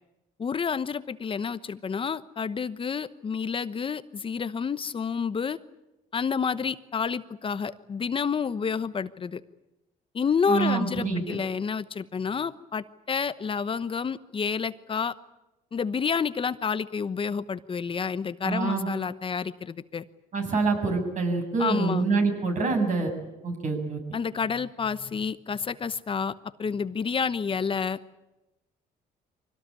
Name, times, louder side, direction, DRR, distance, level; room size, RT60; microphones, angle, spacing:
voice 1, 0.4-5.6 6.1-9.4 10.1-15.1 15.7-20.0 21.6-22.0 24.1-26.3 26.6-28.0, left 6 dB, 30° left, 13 dB, 1.0 m, -29 dB
voice 2, 10.5-11.2 18.4-18.9 20.3-23.1 23.4-24.0, right 4 dB, 50° right, 4 dB, 7.4 m, -26 dB
24.5 x 18.0 x 9.9 m, 0.99 s
cardioid pair, 110°, 17 cm